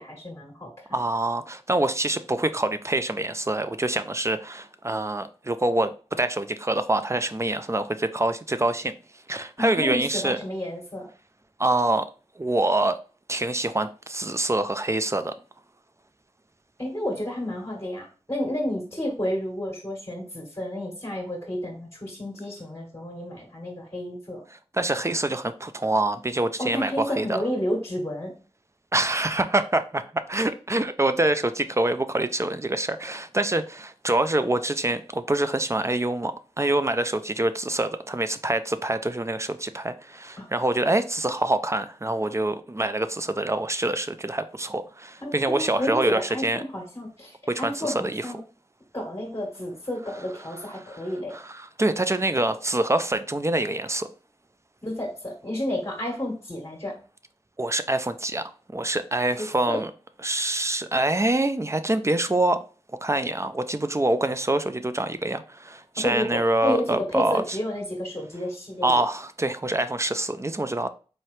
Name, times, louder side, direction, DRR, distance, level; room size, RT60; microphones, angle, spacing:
voice 1, 0.0-1.0 9.6-11.1 16.8-24.4 26.6-28.3 40.4-40.5 45.2-48.4 48.9-51.3 54.8-57.0 59.4-59.8 66.0-69.0, left 1 dB, 25° left, 1.5 m, -31 dB
voice 2, 0.9-8.9 9.3-10.4 11.6-12.1 12.4-13.0 13.3-15.3 24.7-27.4 28.9-46.6 47.5-48.3 51.3-54.1 57.6-58.4 58.7-59.9 60.2-62.6 63.0-67.4 68.8-70.9, right 2 dB, 25° right, 0.4 m, -25 dB
4.2 x 2.8 x 3.2 m
wide cardioid pair, 45°, 11 cm